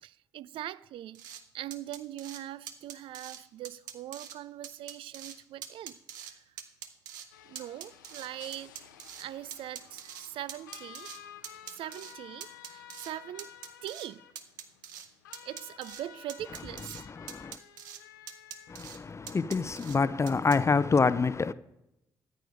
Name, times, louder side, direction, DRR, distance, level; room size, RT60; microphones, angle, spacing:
voice 1, 0.0-6.6 7.4-8.7 9.2-11.1 11.7-13.5 13.8-14.3 15.4-17.1, right 13 dB, 60° right, 0.4 m, -42 dB
sound 1, 1.1-1.4 1.7-2.4 2.7-3.4 3.6-4.4 4.6-5.4 5.6-6.3 6.6-7.3 7.5-9.3 9.5-11.2 11.4-12.1 12.4-13.1 13.4-14.1 14.4-15.1 15.3-16.0 16.3-17.0 17.3-18.0 18.3-19.0 19.3-20.0 20.3-20.6, right 9 dB, 85° right, 0.8 m, -44 dB
sound 2, 7.3-18.8, left 10 dB, 85° left, 0.6 m, -52 dB
voice 2, 16.9-17.6 18.7-21.5, left 4 dB, 30° left, 0.5 m, -27 dB
13.5 x 9.2 x 5.1 m
hypercardioid pair, 40°, 10 cm